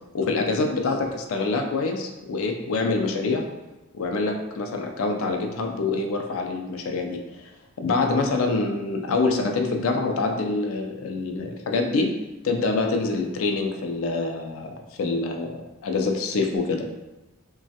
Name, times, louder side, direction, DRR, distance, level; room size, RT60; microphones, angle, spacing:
voice 1, 0.1-3.4 3.9-7.5 7.8-12.1 12.4-16.9, left 3 dB, 65° left, 3 dB, 0.4 m, -26 dB
3.0 x 2.3 x 2.7 m, 1.1 s
head